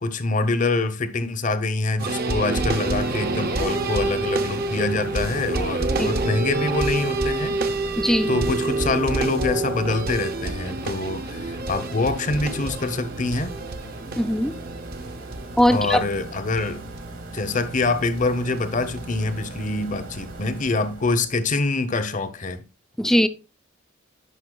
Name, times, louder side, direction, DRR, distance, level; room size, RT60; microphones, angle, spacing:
voice 1, 0.0-7.6 8.3-13.6 15.7-16.8 17.3-22.6, left 3 dB, 40° left, 0.7 m, -25 dB
sound 1, 2.0-16.6 17.0-17.1 17.4-17.5 18.2-18.3 18.6-19.2 19.8-19.9, right 2 dB, 45° right, 0.6 m, -27 dB
sound 2, 2.1-21.5, right 2 dB, 70° right, 1.7 m, -38 dB
voice 2, 8.0-8.3 14.2-14.5 15.6-16.0 23.0-23.3, equal, ahead, 0.4 m, -20 dB
11.0 x 5.3 x 2.2 m
head